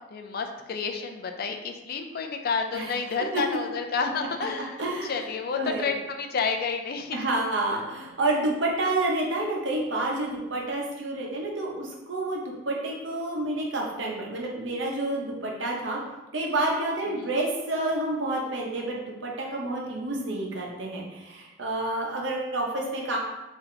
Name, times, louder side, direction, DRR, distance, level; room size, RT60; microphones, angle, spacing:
voice 1, 0.1-7.2 7.7-7.8 17.1-17.3, left 5 dB, 55° left, 5 dB, 0.4 m, -30 dB
voice 2, 4.8-5.2 5.5-5.9 7.1-16.0 16.3-23.2, right 2 dB, 75° right, -1 dB, 0.9 m, -29 dB
4.0 x 2.8 x 3.3 m, 1.0 s
head